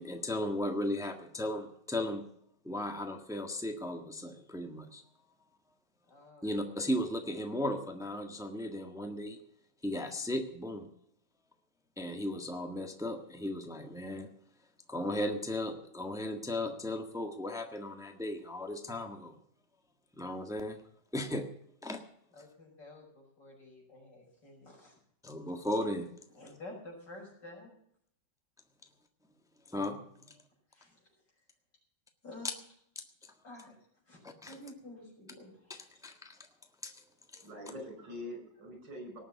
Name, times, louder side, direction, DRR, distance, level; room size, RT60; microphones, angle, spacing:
voice 1, 0.0-2.2 2.6-5.0 6.4-9.4 9.8-10.9 12.0-14.3 14.9-19.4 20.2-20.8 21.1-21.4 21.8-22.0 25.2-26.1 29.7-30.0 34.4-34.6 36.0-36.4 36.8-36.9, left 1 dB, ahead, 5 dB, 1.4 m, -36 dB
voice 2, 6.1-6.5 6.8-7.0 22.3-24.9 26.3-27.7 30.2-30.3 30.7-31.1 32.2-32.6 33.4-33.7 34.1-35.7, left 1 dB, 75° left, -1 dB, 6.5 m, -50 dB
voice 3, 37.3-39.2, left 1 dB, 80° right, 4 dB, 6.1 m, -44 dB
18.5 x 7.2 x 8.4 m, 0.69 s
omnidirectional pair, 1.9 m